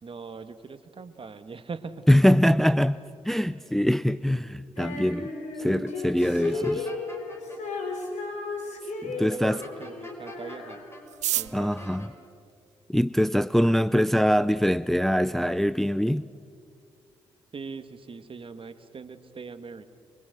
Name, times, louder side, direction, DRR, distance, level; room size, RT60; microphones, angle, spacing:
voice 1, 0.0-2.1 6.2-7.1 9.0-10.8 11.3-11.8 17.5-19.8, right 4 dB, 45° right, 1.7 m, -41 dB
voice 2, 2.1-3.0 3.2-5.3 5.6-6.8 9.0-9.6 11.5-12.1 12.9-16.3, equal, ahead, 0.6 m, -23 dB
Female singing, 4.8-11.2, left 3 dB, 65° left, 4.1 m, -35 dB
sound 1, 6.2-7.6 9.6-11.0 11.3-12.1, left 1 dB, 20° left, 5.4 m, -45 dB
sound 2, 11.0-13.3 14.1-14.2 14.4-14.5 14.8-15.3 15.6-15.7 15.9-16.3 16.6-16.8 17.1-17.4, right 13 dB, 65° right, 0.5 m, -33 dB
24.5 x 24.0 x 6.7 m
hypercardioid pair, 40°, 13 cm